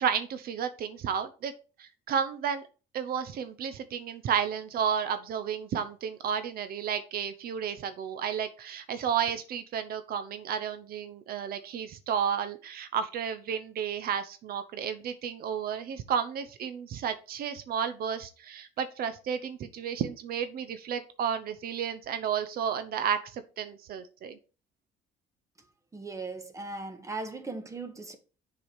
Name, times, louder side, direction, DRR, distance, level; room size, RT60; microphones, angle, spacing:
voice 1, 0.0-1.5 1.8-2.6 2.9-24.4, right 8 dB, 65° right, 0.8 m, -32 dB
voice 2, 25.9-28.2, right 3 dB, 20° right, 1.4 m, -38 dB
7.1 x 5.0 x 4.9 m
cardioid pair, 110°, 17 cm